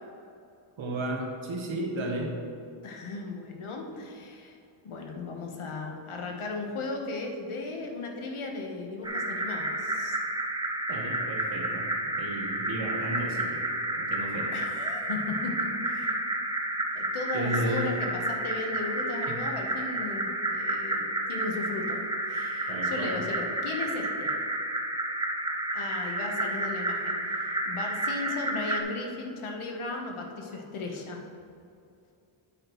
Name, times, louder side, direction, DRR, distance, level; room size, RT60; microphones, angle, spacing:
voice 1, 0.8-2.3 10.9-13.7 14.0-14.5 17.3-17.9 19.3-19.4 22.7-23.2, right 1 dB, 70° right, 0 dB, 1.5 m, -33 dB
voice 2, 2.8-4.6 4.8-10.2 14.5-16.1 16.9-24.4 25.7-31.2, left 3 dB, 85° left, 2 dB, 1.3 m, -36 dB
sound 1, 9.0-28.8, right 1 dB, 10° right, 0.5 m, -31 dB
8.8 x 8.5 x 3.1 m, 2.5 s
wide cardioid pair, 165°, 48 cm